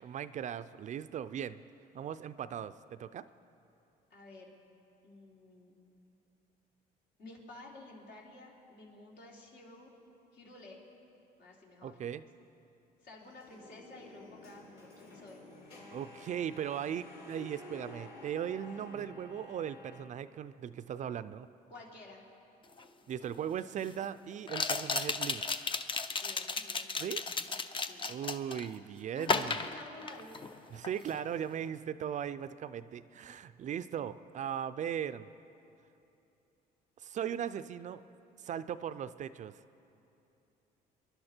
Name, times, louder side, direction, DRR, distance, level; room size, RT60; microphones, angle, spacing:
voice 1, 0.0-1.6 1.9-3.2 11.8-12.2 15.9-21.5 23.1-25.4 27.0-27.2 28.1-29.6 30.7-35.3 37.0-38.0 38.4-39.5, right 9 dB, 45° right, 13 dB, 0.5 m, -38 dB
voice 2, 4.1-4.5 5.0-5.9 7.2-9.9 10.3-10.8 11.4-12.0 13.0-15.4 21.7-22.2 26.2-28.1 29.1-30.5, left 2 dB, 65° left, -2 dB, 3.3 m, -52 dB
sound 1, 13.2-20.0, left 2 dB, 85° left, 4.6 m, -51 dB
sound 2, 22.8-22.9 24.5-28.7 29.2-30.6 30.8-31.2, left 4 dB, 30° left, 0.7 m, -34 dB
26.5 x 11.5 x 4.4 m, 2.8 s
cardioid pair, 110°, 17 cm